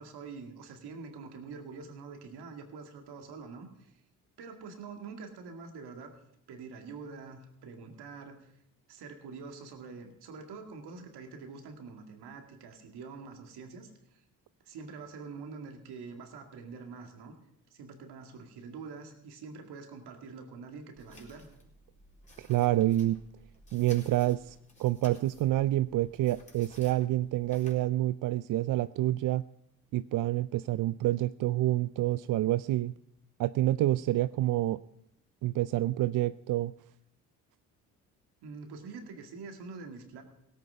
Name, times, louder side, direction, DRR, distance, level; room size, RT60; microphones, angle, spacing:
voice 1, 0.0-4.0 4.4-6.1 6.5-8.5 8.9-14.2 14.6-17.4 17.7-21.5 38.4-40.2, right 4 dB, 70° right, 4 dB, 2.2 m, -45 dB
sound 1, 20.9-27.8, left 1 dB, 20° left, 4.0 m, -56 dB
voice 2, 22.4-23.2 23.7-29.4 29.9-32.9 33.4-34.8 35.4-36.7, right 15 dB, 50° right, 15 dB, 0.5 m, -28 dB
17.5 x 8.5 x 5.6 m, 0.76 s
hypercardioid pair, 50°, 41 cm